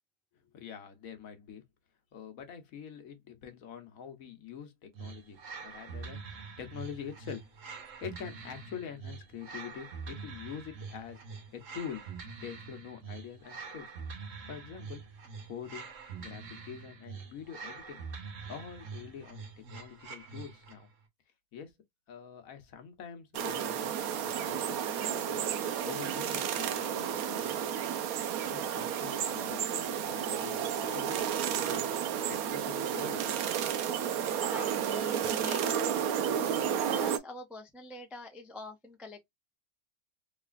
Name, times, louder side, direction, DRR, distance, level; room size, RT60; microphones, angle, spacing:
voice 1, 0.3-1.6 2.1-7.5 7.7-12.0 12.4-13.9 14.5-15.0 15.4-15.9 16.2-19.4 19.7-20.9 21.5-21.7 22.1-27.6 28.2-31.3 31.5-31.9 32.3-33.2 33.5-33.6, left 8 dB, 70° left, 1.3 m, -45 dB
sound 1, 4.9-20.9, right 5 dB, 60° right, 1.3 m, -45 dB
sound 2, 23.3-37.2, right 9 dB, 75° right, 1.1 m, -32 dB
voice 2, 34.5-36.3 36.8-39.3, left 2 dB, ahead, 0.3 m, -45 dB
3.5 x 3.1 x 2.4 m
omnidirectional pair, 1.5 m